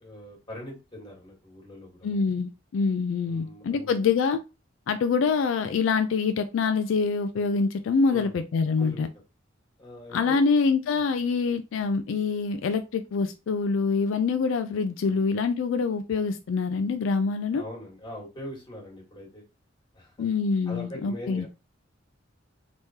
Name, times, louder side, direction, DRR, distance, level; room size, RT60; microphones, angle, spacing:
voice 1, 0.0-2.2 3.2-3.9 8.1-8.3 8.8-9.1 9.8-10.4 10.9-11.1 15.1-15.2 17.5-19.4 19.9-20.3 20.6-21.5, left 1 dB, 25° left, 1.4 m, -42 dB
voice 2, 2.0-4.4 4.9-9.1 10.1-17.6 20.2-21.5, left 5 dB, 75° left, 0.3 m, -25 dB
3.5 x 3.0 x 2.7 m
head